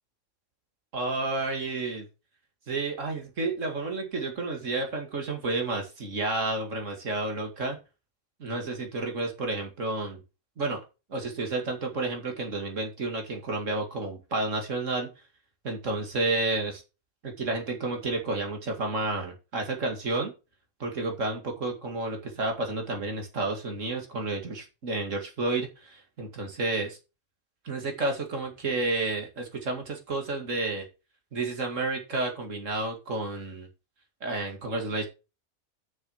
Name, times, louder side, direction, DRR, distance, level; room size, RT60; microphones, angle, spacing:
voice 1, 0.9-2.1 2.7-7.8 8.4-10.2 10.6-10.8 11.1-15.1 15.6-16.8 17.2-20.3 20.8-27.0 27.6-30.9 31.3-33.7 34.2-35.1, right 2 dB, 60° right, 3 dB, 2.5 m, -31 dB
6.8 x 6.5 x 5.6 m, 0.29 s
omnidirectional pair, 1.5 m